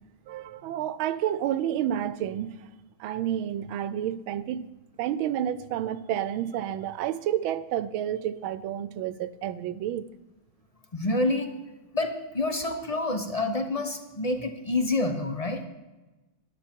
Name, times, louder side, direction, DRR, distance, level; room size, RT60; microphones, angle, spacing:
voice 1, 0.3-2.6 3.0-4.7 5.0-10.0, right 11 dB, 80° right, 1.4 m, -30 dB
voice 2, 10.9-11.5 11.9-15.6, left 2 dB, 30° left, 0.6 m, -28 dB
13.0 x 11.0 x 4.4 m
omnidirectional pair, 2.2 m